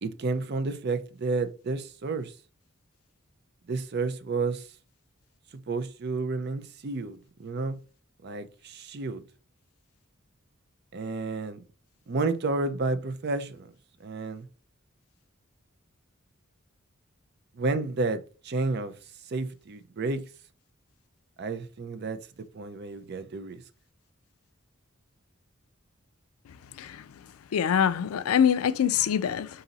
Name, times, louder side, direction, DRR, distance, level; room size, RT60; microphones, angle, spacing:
voice 1, 0.0-2.3 3.7-4.6 5.7-7.8 8.2-9.2 10.9-11.6 12.1-13.7 14.0-14.5 17.6-18.9 19.3-20.2 21.4-22.2 22.5-23.6, right 3 dB, 50° right, 0.5 m, -31 dB
voice 2, 27.5-29.5, left 8 dB, 85° left, 0.4 m, -24 dB
4.0 x 2.7 x 4.0 m
head